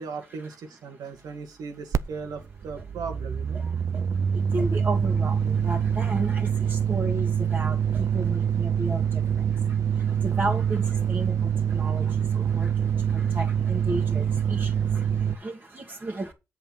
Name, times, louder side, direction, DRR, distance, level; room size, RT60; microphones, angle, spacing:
voice 1, 0.0-3.6, right 5 dB, 85° right, 2.3 m, -37 dB
sound 1, 1.9-2.1 2.3-15.4, right 8 dB, 50° right, 0.6 m, -25 dB
voice 2, 3.5-16.3, right 2 dB, 25° right, 2.0 m, -34 dB
8.0 x 7.0 x 4.3 m
cardioid pair, 85°, 6 cm